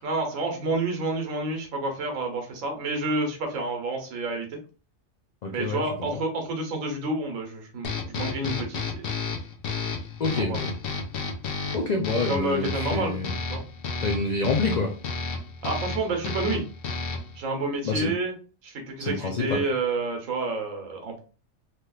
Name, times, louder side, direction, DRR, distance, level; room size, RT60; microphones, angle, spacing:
voice 1, 0.0-4.6 5.5-9.1 10.4-10.6 12.3-13.2 13.5-13.6 15.6-16.6 17.4-18.3 18.6-21.2, right 2 dB, 75° right, 3 dB, 1.2 m, -29 dB
voice 2, 5.4-6.2 10.2-10.7 11.7-13.3 14.0-14.9 17.8-18.1 19.0-19.6, left 3 dB, 75° left, 2 dB, 0.3 m, -27 dB
sound 1, 7.8-17.4, left 4 dB, 55° left, 0.7 m, -32 dB
3.3 x 2.8 x 2.3 m, 0.36 s
omnidirectional pair, 1.4 m